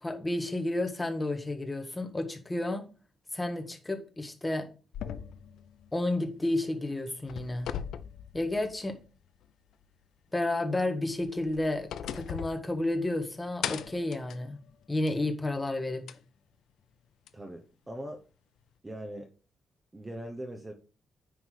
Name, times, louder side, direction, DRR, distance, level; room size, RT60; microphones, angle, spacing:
voice 1, 0.0-2.8 3.3-4.6 5.9-7.7 8.3-8.9 10.3-14.6 14.9-16.0, left 2 dB, 10° left, 1.1 m, -31 dB
sound 1, 4.9-6.7 7.0-9.1 9.4-9.5 11.1-13.2 13.6-15.3 16.1-16.2 17.3-17.4, left 9 dB, 75° left, 0.6 m, -40 dB
voice 2, 17.3-18.2 18.8-19.3 19.9-20.7, right 1 dB, 15° right, 0.8 m, -40 dB
9.5 x 3.3 x 6.2 m
cardioid pair, 175°, 0 cm